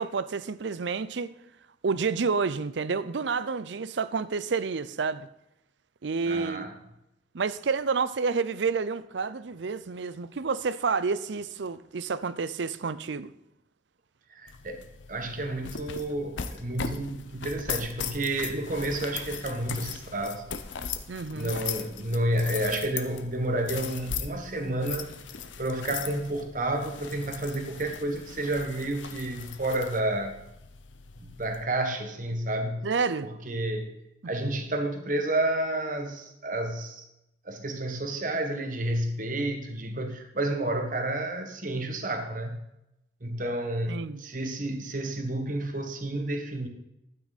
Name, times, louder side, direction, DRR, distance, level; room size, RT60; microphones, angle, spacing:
voice 1, 0.0-1.3 1.8-5.3 6.0-6.7 7.3-13.3 21.1-21.5 32.8-33.3 43.9-44.2, right 5 dB, 75° right, 0.5 m, -29 dB
voice 2, 6.2-6.7 14.3-14.8 15.1-20.5 21.3-25.1 25.6-30.4 31.2-32.9 33.2-34.0 34.3-37.1 37.4-42.6 43.2-46.7, right 1 dB, 45° right, 1.4 m, -30 dB
sound 1, 14.5-31.6, left 7 dB, 85° left, 0.8 m, -39 dB
12.5 x 9.0 x 4.1 m
head